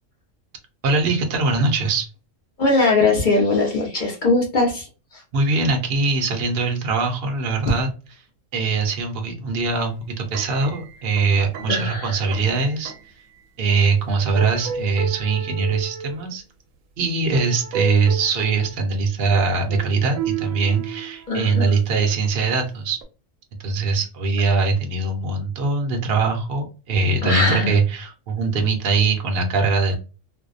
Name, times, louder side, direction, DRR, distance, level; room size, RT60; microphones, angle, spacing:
voice 1, 0.8-2.1 5.3-7.9 8.5-12.9 13.6-16.4 17.0-23.0 23.6-29.9, right 4 dB, 60° right, 3 dB, 0.7 m, -22 dB
voice 2, 2.6-4.9 5.1-5.2 11.7-12.0 21.3-21.7 27.2-27.7, left 2 dB, 45° left, -1 dB, 0.8 m, -20 dB
sound 1, 10.2-13.2 13.8-14.0 14.4-16.2 17.2-18.8 19.3-21.7 22.1-22.4 23.0-23.1, right 6 dB, 85° right, 1.0 m, -32 dB
2.6 x 2.1 x 2.4 m, 0.34 s
omnidirectional pair, 1.3 m